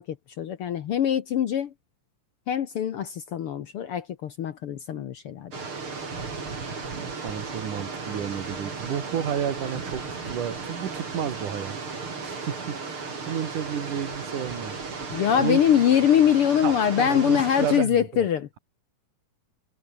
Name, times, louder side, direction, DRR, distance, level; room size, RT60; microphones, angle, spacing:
voice 1, 0.0-1.7 2.5-5.5 15.1-18.6, left 9 dB, 60° left, 1.6 m, -23 dB
sound 1, 5.5-17.8, right 4 dB, 40° right, 4.8 m, -35 dB
voice 2, 6.9-15.6 16.6-18.0, right 9 dB, 80° right, 3.8 m, -32 dB
omnidirectional pair, 3.6 m